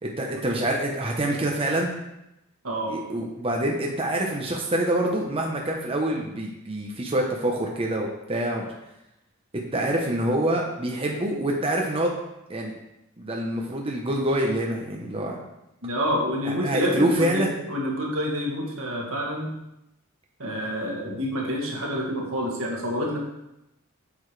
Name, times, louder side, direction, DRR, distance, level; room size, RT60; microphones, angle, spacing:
voice 1, 0.0-2.0 2.9-8.6 9.7-12.1 12.5-12.7 13.2-15.4 16.4-17.5, right 1 dB, 25° right, -1 dB, 0.9 m, -26 dB
voice 2, 2.6-3.0 15.8-19.5 20.4-23.2, equal, 80° right, -2 dB, 2.0 m, -28 dB
8.5 x 7.0 x 3.3 m, 0.88 s
head